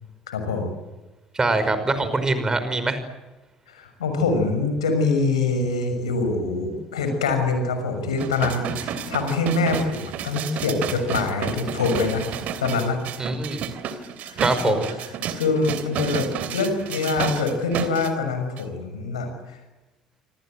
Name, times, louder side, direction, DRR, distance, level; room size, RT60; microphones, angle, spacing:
voice 1, 0.3-0.7 3.7-12.3 12.6-13.0 14.2-14.4 14.7-19.6, left 3 dB, 75° left, 7 dB, 6.3 m, -25 dB
voice 2, 1.3-3.0 13.2-13.6 14.4-14.9, right 3 dB, 20° right, 10 dB, 5.5 m, -23 dB
sound 1, 8.2-18.1 18.6-18.7, right 8 dB, 50° right, 3.0 m, -31 dB
28.0 x 25.5 x 7.8 m, 1.1 s
figure-of-eight pair, 55°, 3 cm